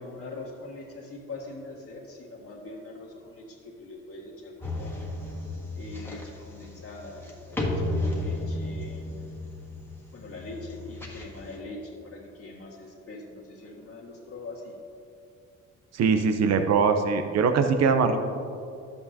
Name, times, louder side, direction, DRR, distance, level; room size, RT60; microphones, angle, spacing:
voice 1, 0.0-5.0 5.7-9.2 10.1-14.7, left 2 dB, 50° left, -3 dB, 1.8 m, -42 dB
sound 1, 4.6-11.6, left 1 dB, 5° left, 1.6 m, -33 dB
voice 2, 15.9-18.3, right 5 dB, 60° right, 7 dB, 0.8 m, -22 dB
11.5 x 8.3 x 2.8 m, 2.5 s
cardioid pair, 90°, 30 cm